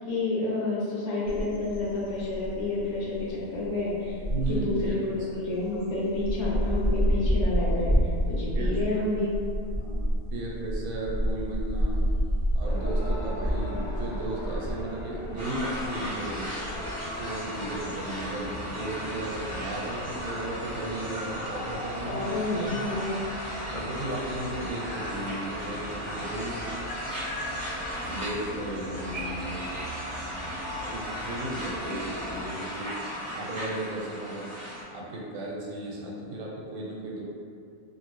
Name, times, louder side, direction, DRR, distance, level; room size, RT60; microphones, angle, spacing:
voice 1, 0.1-4.2 4.5-7.9 8.3-9.3 22.1-23.3 31.9-32.0, left 2 dB, 65° left, -7 dB, 1.0 m, -29 dB
sound 1, 1.2-21.0, equal, 35° left, 0.5 m, -29 dB
voice 2, 4.3-5.0 8.5-8.8 9.7-10.0 10.3-12.1 12.5-16.5 17.1-22.2 22.6-22.9 23.7-26.7 28.1-29.7 30.4-33.0 33.3-34.5 34.9-37.2, right 1 dB, 85° right, -3 dB, 1.1 m, -35 dB
sound 2, 12.6-32.5, equal, 85° left, 1.1 m, -40 dB
sound 3, 15.4-34.8, equal, 40° right, 0.4 m, -36 dB
2.7 x 2.5 x 3.0 m, 2.4 s
omnidirectional pair, 1.5 m